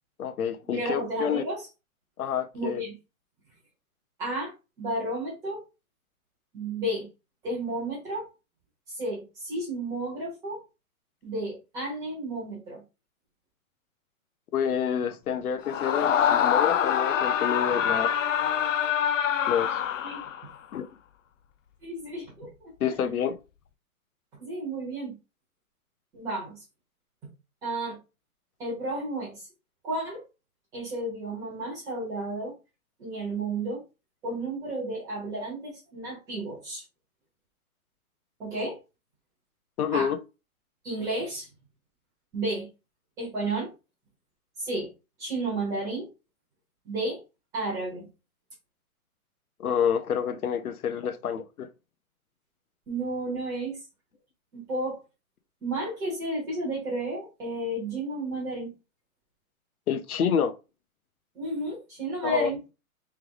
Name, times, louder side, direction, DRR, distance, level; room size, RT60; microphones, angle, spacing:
voice 1, 0.2-1.4 2.2-2.8 14.5-18.2 19.5-19.8 20.7-20.9 22.8-23.4 39.8-40.2 49.6-51.7 59.9-60.5 62.2-62.5, left 7 dB, 85° left, 0.8 m, -28 dB
voice 2, 0.7-1.6 2.5-2.9 4.2-4.5 4.8-5.6 6.5-7.1 7.4-8.3 8.9-10.6 11.2-12.8 20.0-20.2 21.8-22.7 24.4-25.1 26.1-26.6 27.6-28.0 28.6-29.5 29.8-30.2 30.7-32.5 33.0-33.8 34.2-36.8 38.4-38.7 39.9-40.1 40.8-41.5 42.3-42.7 43.2-43.7 44.6-44.9 45.2-46.1 46.8-47.2 47.5-48.1 52.9-53.8 54.5-55.0 55.6-58.7 61.3-62.6, right 2 dB, 5° right, 1.2 m, -32 dB
Screaming, 15.6-20.5, left 9 dB, 60° left, 0.5 m, -25 dB
3.4 x 3.3 x 3.5 m
hypercardioid pair, 175°, 43 cm